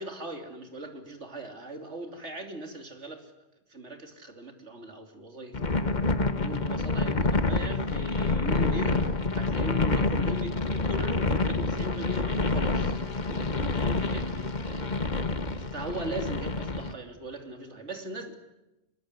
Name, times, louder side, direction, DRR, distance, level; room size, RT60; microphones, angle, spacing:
voice 1, 0.0-3.3 3.7-5.7 6.2-13.0 13.3-14.9 15.7-18.3, right 1 dB, 85° right, 3.3 m, -39 dB
sound 1, 5.5-16.9, left 3 dB, 40° left, 1.5 m, -27 dB
26.0 x 21.5 x 9.7 m
omnidirectional pair, 1.2 m